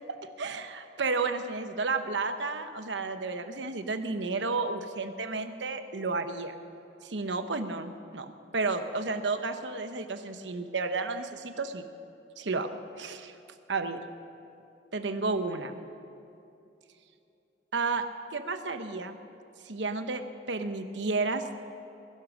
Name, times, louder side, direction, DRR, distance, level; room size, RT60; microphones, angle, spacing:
voice 1, 0.4-6.6 7.0-11.8 12.4-12.7 13.0-13.3 13.7-14.0 14.9-15.8 17.7-18.0 18.3-19.2 19.6-20.2 20.5-21.4, right 3 dB, 90° right, 8 dB, 1.0 m, -32 dB
20.0 x 11.5 x 6.3 m, 2.8 s
head